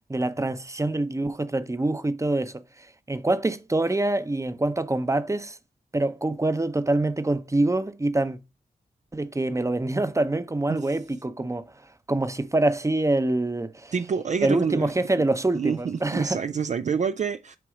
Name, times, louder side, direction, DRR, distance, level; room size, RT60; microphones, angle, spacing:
voice 1, 0.1-5.6 5.9-8.4 9.1-11.7 12.1-13.9 14.4-16.4, right 2 dB, 20° right, 0.7 m, -25 dB
voice 2, 13.9-14.9 15.5-17.6, right 6 dB, 50° right, 0.4 m, -27 dB
7.8 x 3.0 x 4.9 m
cardioid pair, 40°, 16 cm